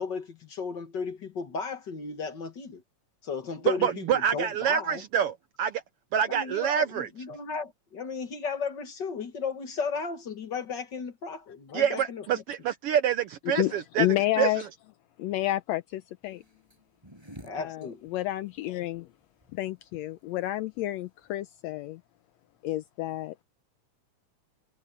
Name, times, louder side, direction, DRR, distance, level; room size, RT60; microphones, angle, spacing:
voice 1, 0.0-2.8 3.2-5.0 6.3-12.4 17.4-18.0, left 5 dB, 45° left, 1.7 m, -35 dB
voice 2, 3.7-5.8 6.1-7.1 11.7-14.1 14.4-14.5, right 9 dB, 75° right, 1.3 m, -26 dB
voice 3, 13.4-14.6 15.2-16.4 17.5-19.1 19.5-22.0 22.6-23.3, left 15 dB, 80° left, 1.7 m, -30 dB
sound 1, 16.2-21.4, equal, 10° right, 6.9 m, -53 dB
omnidirectional pair, 3.4 m